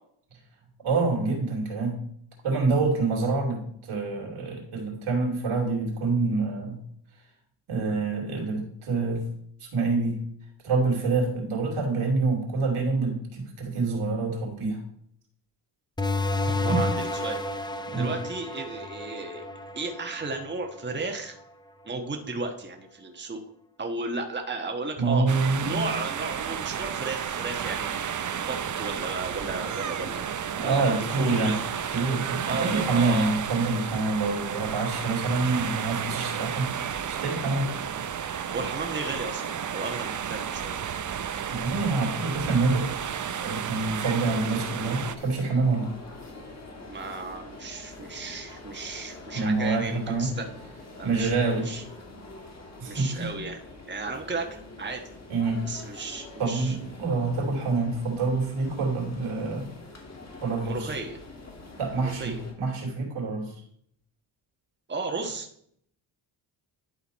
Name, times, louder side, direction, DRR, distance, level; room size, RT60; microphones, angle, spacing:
voice 1, 0.8-2.0 2.4-6.8 7.7-9.2 9.6-10.2 10.6-14.8 16.4-16.8 17.9-18.1 25.0-25.9 30.6-31.5 31.9-37.7 41.5-43.0 43.4-46.0 49.3-50.3 51.0-51.7 52.8-53.3 55.3-55.6 56.4-59.7 60.4-60.9 61.8-63.5, right 3 dB, 80° right, -1 dB, 2.7 m, -26 dB
sound 1, 16.0-21.2, left 2 dB, 10° left, 0.8 m, -31 dB
voice 2, 16.5-16.9 17.2-17.4 18.0-19.4 19.7-21.3 21.8-23.4 23.8-25.2 25.6-31.6 32.4-33.3 38.3-40.8 46.8-50.5 51.0-51.8 52.9-53.6 53.9-55.0 55.6-56.7 60.6-61.2 62.0-62.4 64.9-65.5, right 3 dB, 20° right, 3 dB, 1.3 m, -34 dB
sound 2, 25.3-45.2, right 8 dB, 40° right, 0.6 m, -32 dB
sound 3, 43.7-62.5, left 2 dB, 30° left, 2.7 m, -45 dB
11.5 x 4.0 x 4.2 m, 0.65 s
cardioid pair, 65°, 49 cm